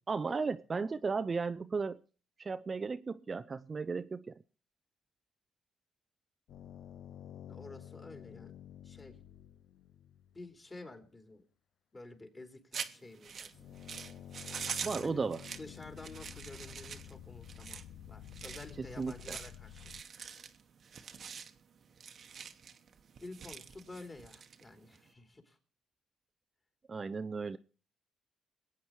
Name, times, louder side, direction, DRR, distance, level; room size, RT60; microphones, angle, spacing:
voice 1, 0.1-2.0 2.4-4.4 14.8-15.5 18.8-19.4 26.9-27.6, right 4 dB, 35° right, 0.6 m, -35 dB
sound 1, 6.5-10.6 13.3-20.0, left 11 dB, 75° left, 0.7 m, -51 dB
voice 2, 7.5-8.5 8.8-9.2 10.3-11.4 11.9-13.5 15.0-15.2 15.6-19.9 23.2-25.6, left 2 dB, 25° left, 3.2 m, -50 dB
sound 2, 12.7-25.1, right 6 dB, 55° right, 1.1 m, -45 dB
22.0 x 8.6 x 4.6 m
cardioid pair, 90°, 0 cm